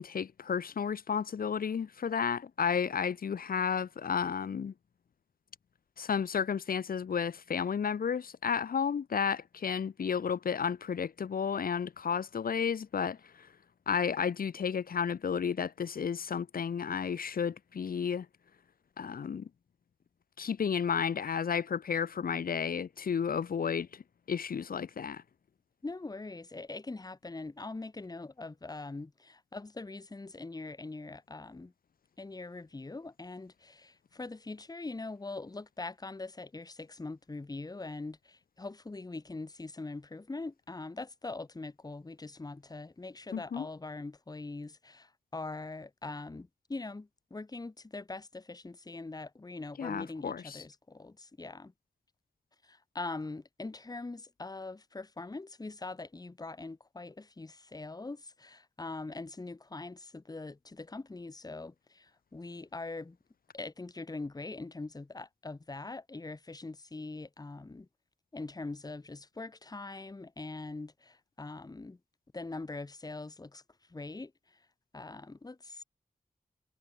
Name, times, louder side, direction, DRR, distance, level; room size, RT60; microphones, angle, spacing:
voice 1, 0.0-4.7 6.0-13.5 13.9-18.3 19.0-19.5 20.4-24.0 24.3-25.2 43.3-43.7 49.8-50.6, left 7 dB, 80° left, 0.8 m, -32 dB
voice 2, 25.8-31.7 32.2-51.7 52.6-63.2 63.5-67.9 68.3-72.0 72.3-73.6 73.9-74.3 74.9-75.8, left 3 dB, 25° left, 0.9 m, -42 dB
wide cardioid pair, 60°, 15 cm